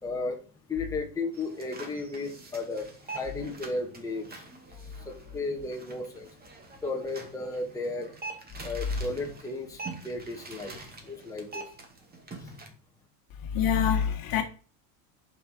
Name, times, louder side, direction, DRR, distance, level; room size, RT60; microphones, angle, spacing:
voice 1, 0.0-0.4 0.7-4.5 4.8-6.4 6.8-8.1 8.6-11.6 12.3-12.7, left 3 dB, 5° left, 2.0 m, -35 dB
sound 1, 1.3-12.7, right 3 dB, 20° right, 2.2 m, -45 dB
voice 2, 13.4-14.4, left 8 dB, 45° left, 1.9 m, -25 dB
10.5 x 6.2 x 5.3 m
supercardioid pair, 130°, 48 cm